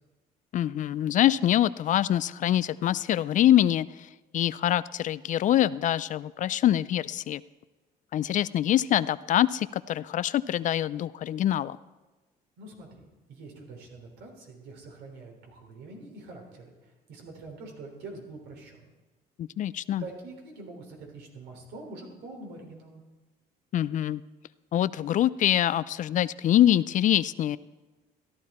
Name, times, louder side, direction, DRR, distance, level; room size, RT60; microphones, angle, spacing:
voice 1, 0.5-7.4 8.1-11.8 19.4-20.0 23.7-24.2 24.7-27.6, left 12 dB, 50° left, 18 dB, 0.4 m, -25 dB
voice 2, 12.6-18.8 20.0-23.0, right 3 dB, 80° right, 1 dB, 3.5 m, -45 dB
14.0 x 12.0 x 4.3 m, 1.2 s
cardioid pair, 110°, 17 cm